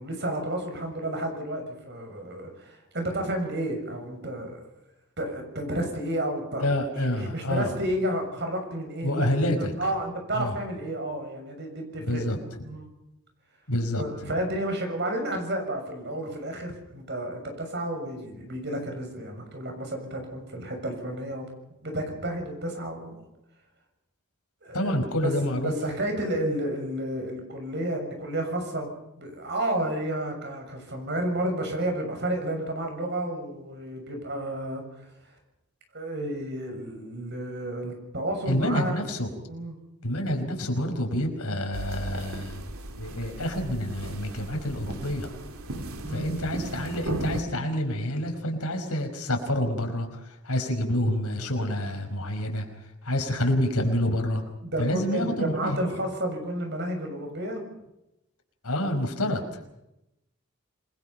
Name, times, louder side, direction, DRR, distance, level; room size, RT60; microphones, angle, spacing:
voice 1, 0.0-4.6 5.2-9.3 9.8-12.2 12.6-12.9 14.0-21.5 21.8-23.2 24.6-25.0 25.2-25.3 25.6-28.9 29.2-34.8 35.9-39.0 39.5-39.8 46.0-46.3 54.6-57.6, right 1 dB, 50° right, 4 dB, 6.9 m, -31 dB
voice 2, 6.6-7.7 9.0-9.7 10.4-10.5 12.0-12.4 13.7-14.3 24.7-25.7 38.5-39.3 40.0-42.6 43.0-45.3 46.1-50.2 50.4-52.7 53.0-54.4 54.8-55.8 58.6-59.6, left 1 dB, 90° left, 5 dB, 5.2 m, -27 dB
sound 1, 41.7-47.4, right 1 dB, 75° right, 2.6 m, -37 dB
28.0 x 21.5 x 5.8 m, 0.87 s
head